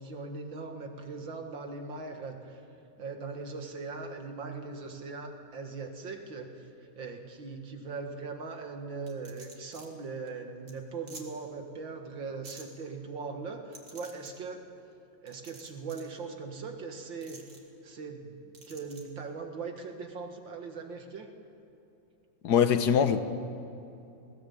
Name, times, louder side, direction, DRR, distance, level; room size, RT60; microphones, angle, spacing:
voice 1, 0.0-2.6 3.0-6.7 7.0-14.7 15.2-17.4 17.8-21.3, right 4 dB, 75° right, 2.6 m, -40 dB
sound 1, 9.1-9.9 10.3-10.4 10.7-10.8 11.1-11.2 12.4-12.6 13.7-14.3 15.3-16.1 17.2-17.6 18.5-19.0, right 3 dB, 50° right, 2.9 m, -49 dB
voice 2, 22.4-23.2, left 7 dB, 60° left, 1.5 m, -23 dB
20.5 x 17.5 x 8.6 m
omnidirectional pair, 2.1 m